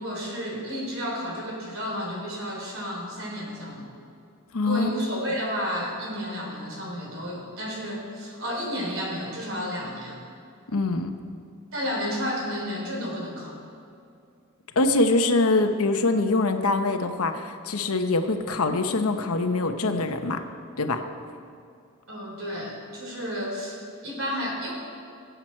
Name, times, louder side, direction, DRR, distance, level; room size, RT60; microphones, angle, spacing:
voice 1, 0.0-3.9 4.6-10.2 11.7-13.6 20.1-20.2 22.1-24.7, equal, 60° right, -2 dB, 3.6 m, -32 dB
voice 2, 4.5-4.9 10.7-11.1 14.8-20.4 20.8-21.0, left 2 dB, 70° left, 6 dB, 0.9 m, -24 dB
23.0 x 8.0 x 4.5 m, 2.5 s
head